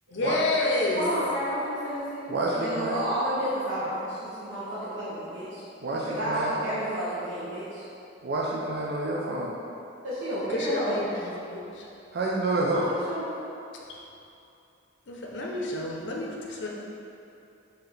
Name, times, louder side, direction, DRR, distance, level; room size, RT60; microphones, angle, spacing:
voice 1, 0.1-1.0 10.5-11.9 13.9-14.0 15.1-16.7, left 2 dB, 70° left, -2 dB, 0.6 m, -29 dB
voice 2, 0.9-5.6 6.1-7.8 10.0-11.0 12.7-13.3, equal, 90° right, -12 dB, 1.0 m, -31 dB
voice 3, 2.3-2.9 5.8-6.5 8.2-9.5 12.1-12.9, right 2 dB, 60° right, -3 dB, 0.4 m, -28 dB
5.6 x 2.8 x 3.4 m, 2.8 s
head